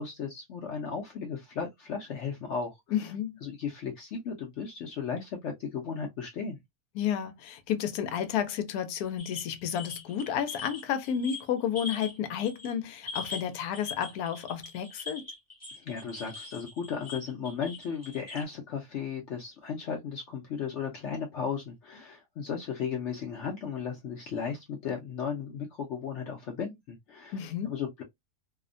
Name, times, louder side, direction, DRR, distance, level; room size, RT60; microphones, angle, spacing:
voice 1, 0.0-2.7 3.4-6.6 15.8-27.4 27.6-28.0, left 6 dB, 65° left, 0.8 m, -35 dB
voice 2, 2.9-3.4 6.9-15.2 27.3-27.7, left 9 dB, 90° left, 1.1 m, -31 dB
sound 1, 9.2-12.2 12.4-12.7 13.0-18.4, left 4 dB, 15° left, 0.7 m, -42 dB
2.8 x 2.1 x 2.4 m
omnidirectional pair, 1.6 m